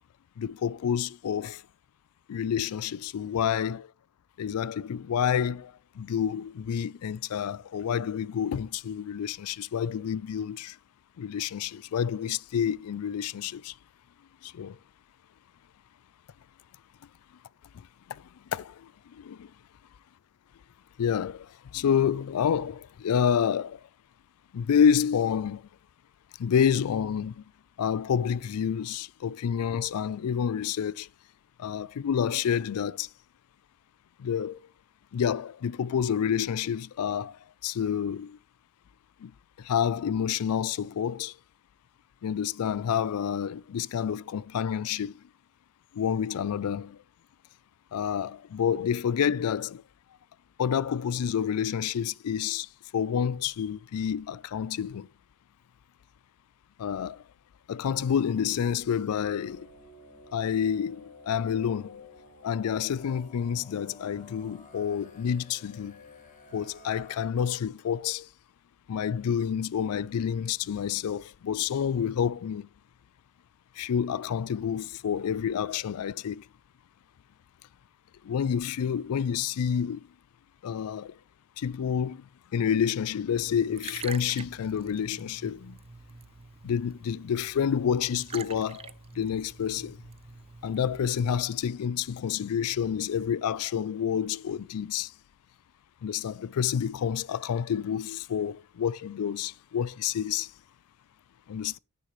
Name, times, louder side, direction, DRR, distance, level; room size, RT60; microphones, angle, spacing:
voice 1, 0.4-1.6 2.3-3.8 4.4-10.8 11.2-13.7 14.4-14.8 18.5-18.9 19.2-19.5 21.0-21.5 21.7-23.8 24.5-25.6 26.4-27.3 27.8-31.1 31.6-33.1 34.2-34.6 35.1-37.3 37.6-38.4 39.2-39.3 39.6-41.3 42.2-45.2 45.9-47.0 47.9-49.8 50.6-52.7 52.9-55.1 56.8-57.2 57.7-59.7 60.3-62.0 62.4-66.0 66.5-68.3 68.9-72.7 73.8-76.4 78.2-80.0 80.6-81.1 81.6-82.2 82.5-85.8 86.6-90.0 90.6-95.1 96.0-100.5 101.5-101.8, left 8 dB, 85° left, 0.4 m, -28 dB
sound 1, 57.9-67.3, left 2 dB, 35° left, 2.5 m, -52 dB
Liquid, 83.3-91.4, right 5 dB, 25° right, 0.4 m, -46 dB
9.6 x 9.5 x 3.1 m
head